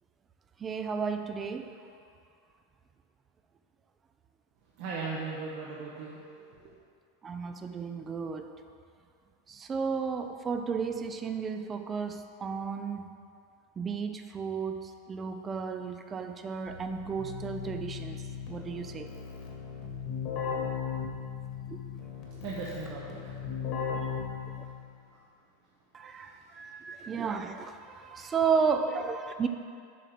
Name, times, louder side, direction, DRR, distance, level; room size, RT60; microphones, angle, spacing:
voice 1, 0.6-1.7 7.2-8.5 9.5-13.0 13.8-18.2 18.5-19.1 21.7-21.8 25.9-27.8 28.0-29.5, right 5 dB, 20° right, 7 dB, 0.4 m, -33 dB
voice 2, 4.8-6.7 22.4-23.3 26.5-26.9 28.0-28.3, right 4 dB, 55° right, -5 dB, 1.0 m, -39 dB
Keyboard (musical), 16.7-25.0, left 7 dB, 50° left, 1.5 m, -37 dB
7.4 x 3.5 x 5.9 m, 2.4 s
supercardioid pair, 130°, 0 cm